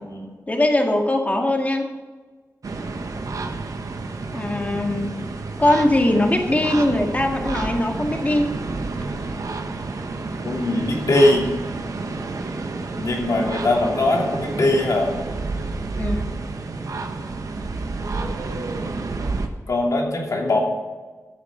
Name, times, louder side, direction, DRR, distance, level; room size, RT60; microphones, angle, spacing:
voice 1, 0.5-1.9 4.3-5.1 5.6-8.5 16.0-16.3, left 1 dB, 25° left, 2 dB, 2.0 m, -21 dB
sound 1, 2.6-19.5, right 3 dB, 75° right, 1.3 m, -30 dB
voice 2, 10.4-11.5 13.0-15.1 19.7-20.6, left 2 dB, 70° left, -1 dB, 3.0 m, -20 dB
13.5 x 7.6 x 5.2 m, 1.4 s
wide cardioid pair, 85°, 6 cm